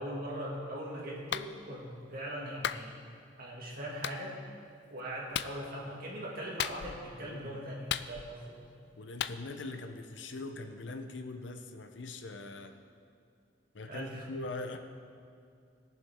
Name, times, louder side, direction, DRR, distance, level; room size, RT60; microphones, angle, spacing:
voice 1, 0.0-3.0 3.4-4.4 4.9-8.6 13.9-14.3, equal, 55° right, -4 dB, 2.4 m, -40 dB
Clapping, 1.3-1.5 2.6-2.9 4.0-4.2 5.3-5.6 6.6-7.0 7.9-8.5 9.2-9.4, left 10 dB, 65° left, 0.3 m, -34 dB
voice 2, 7.2-7.6 9.0-12.8 13.7-14.8, left 2 dB, 90° left, 7 dB, 0.8 m, -42 dB
18.5 x 7.3 x 3.7 m, 2.4 s
head